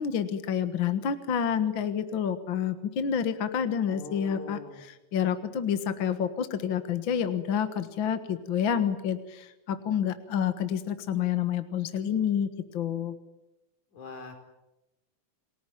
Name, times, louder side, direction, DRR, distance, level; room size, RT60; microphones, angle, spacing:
voice 1, 0.0-13.1, left 8 dB, 50° left, 10 dB, 1.9 m, -29 dB
voice 2, 3.9-4.8 13.9-14.3, left 2 dB, 75° left, 5 dB, 5.9 m, -42 dB
29.0 x 19.5 x 9.2 m, 0.97 s
omnidirectional pair, 3.4 m